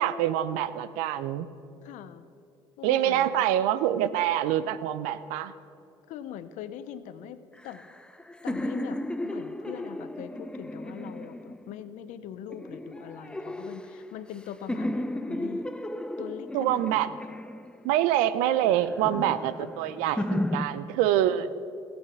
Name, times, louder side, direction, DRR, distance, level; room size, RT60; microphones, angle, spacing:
voice 1, 0.0-1.5 2.8-5.5 16.5-17.1 17.8-21.5, right 12 dB, 80° right, 14 dB, 0.5 m, -25 dB
voice 2, 1.8-2.3 2.8-3.5 6.1-7.8 8.4-15.8 16.2-17.2 19.6-19.7 21.3-21.5, left 10 dB, 70° left, 12 dB, 0.7 m, -42 dB
sound 1, 7.6-11.9 12.5-14.4 14.7-18.0 18.6-20.7, left 1 dB, 5° left, 0.7 m, -34 dB
15.5 x 8.0 x 6.0 m, 2.5 s
hypercardioid pair, 60°, 13 cm